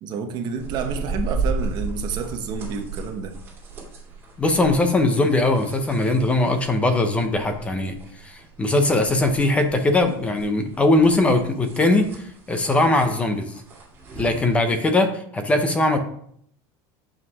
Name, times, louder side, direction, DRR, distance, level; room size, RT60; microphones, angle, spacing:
voice 1, 0.0-3.3, right 6 dB, 35° right, 5 dB, 0.9 m, -29 dB
sound 1, 0.6-14.6, right 3 dB, 20° right, 2.5 m, -35 dB
voice 2, 4.4-13.5 14.2-16.0, left 2 dB, 10° left, 7 dB, 0.7 m, -20 dB
7.4 x 5.6 x 4.7 m, 0.66 s
cardioid pair, 180°, 12 cm